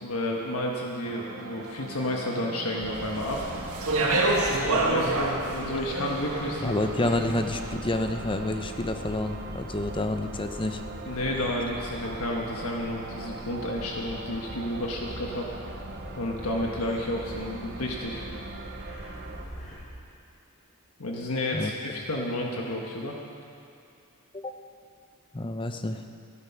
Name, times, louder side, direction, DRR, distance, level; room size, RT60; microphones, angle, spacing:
voice 1, 0.0-3.4 4.6-6.7 11.1-15.5 16.2-18.2 21.0-23.2, left 1 dB, 75° left, -1 dB, 1.4 m, -31 dB
sound 1, 1.0-19.4, right 4 dB, 50° right, 0.7 m, -42 dB
sound 2, 2.8-19.8, equal, 40° left, 4.0 m, -42 dB
Speech, 3.2-7.5, right 2 dB, 85° right, 1.8 m, -27 dB
voice 2, 6.6-10.8 21.5-21.7 24.3-24.5 25.3-26.0, left 2 dB, 25° left, 7 dB, 0.7 m, -29 dB
15.0 x 10.5 x 5.9 m, 2.5 s
head